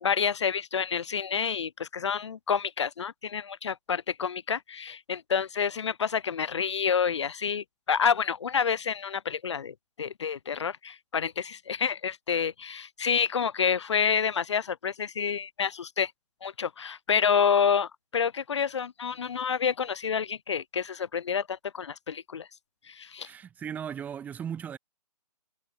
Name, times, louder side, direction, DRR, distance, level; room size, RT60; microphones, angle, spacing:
voice 1, 0.0-16.1 16.4-22.5 22.9-23.3, left 7 dB, 45° left, 1.3 m, -28 dB
voice 2, 23.2-24.8, right 8 dB, 10° right, 1.6 m, -37 dB
figure-of-eight pair, 140°, 21 cm